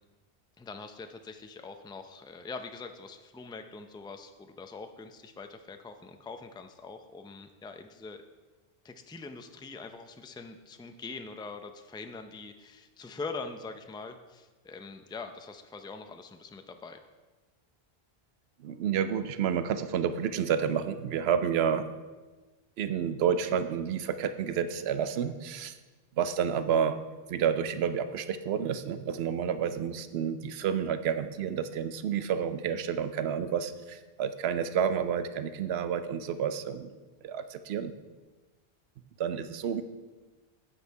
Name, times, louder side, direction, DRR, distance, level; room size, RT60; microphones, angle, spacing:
voice 1, 0.6-8.2 8.8-17.0, left 4 dB, 10° left, 7 dB, 0.3 m, -43 dB
voice 2, 18.6-21.8 22.8-25.7 26.2-27.0 27.3-36.9 37.2-37.9 39.2-39.8, right 8 dB, 85° right, 11 dB, 0.8 m, -30 dB
8.8 x 8.2 x 4.6 m, 1.3 s
omnidirectional pair, 1.0 m